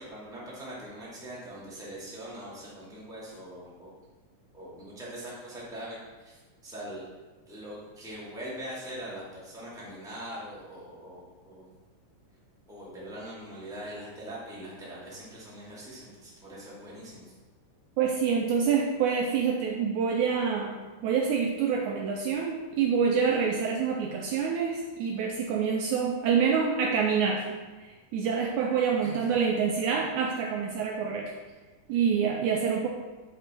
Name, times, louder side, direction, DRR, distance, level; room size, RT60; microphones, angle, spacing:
voice 1, 0.0-3.9 4.5-7.0 7.5-11.7 12.7-17.3 29.0-29.2, right 1 dB, ahead, -8 dB, 1.6 m, -42 dB
voice 2, 18.0-20.8 21.0-27.4 27.8-31.3 31.9-32.9, right 6 dB, 85° right, 1 dB, 1.8 m, -27 dB
8.8 x 5.1 x 4.4 m, 1.3 s
omnidirectional pair, 3.9 m